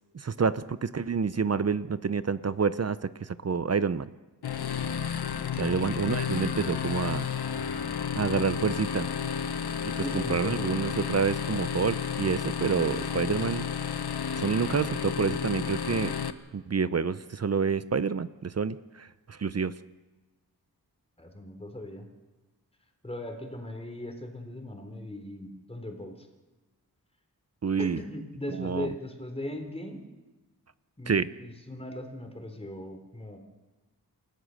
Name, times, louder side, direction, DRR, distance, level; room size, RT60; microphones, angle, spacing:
voice 1, 0.1-4.1 5.6-7.3 8.2-9.1 9.8-13.7 14.3-16.1 16.5-19.7 27.6-28.0 28.6-28.9 31.1-31.3, right 5 dB, 40° right, 14 dB, 0.7 m, -28 dB
sound 1, 4.4-16.3, left 7 dB, 85° left, 1.1 m, -32 dB
voice 2, 9.9-10.7 21.2-22.1 23.0-26.3 27.8-30.0 31.0-31.1 31.4-33.4, left 1 dB, 15° left, 4 dB, 3.7 m, -38 dB
28.0 x 14.5 x 6.5 m, 1.2 s
wide cardioid pair, 85°, 38 cm